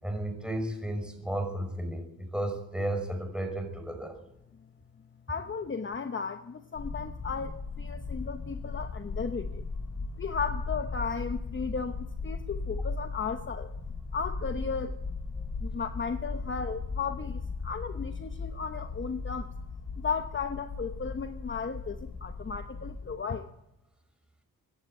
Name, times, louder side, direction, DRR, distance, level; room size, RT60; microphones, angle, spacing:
voice 1, 0.0-4.2, right 1 dB, 5° right, 5 dB, 5.6 m, -33 dB
voice 2, 5.3-9.6 10.2-13.7 14.1-15.0 15.6-19.5 20.0-23.5, left 5 dB, 35° left, 8 dB, 1.1 m, -35 dB
sound 1, 6.7-23.1, left 3 dB, 50° left, 5.0 m, -37 dB
25.0 x 11.5 x 9.1 m, 0.86 s
cardioid pair, 100°, 35 cm